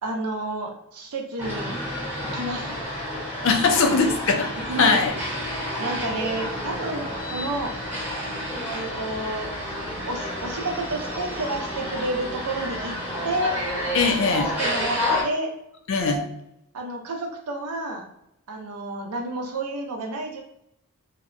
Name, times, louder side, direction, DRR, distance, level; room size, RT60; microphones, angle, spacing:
voice 1, 0.0-1.8 2.3-2.8 3.8-3.9 4.7-5.0 5.8-7.1 7.3-7.7 8.7-9.5 10.1-12.9 13.2-13.5 14.2-15.5 16.0-16.2 16.7-18.1 18.5-20.4, right 2 dB, 90° right, 2 dB, 0.6 m, -30 dB
sound 1, 1.4-15.2, left 1 dB, 10° right, 0.8 m, -30 dB
voice 2, 3.4-5.1 13.9-14.5 15.9-16.2, left 4 dB, 60° left, 5 dB, 0.4 m, -21 dB
2.7 x 2.1 x 2.5 m, 0.79 s
head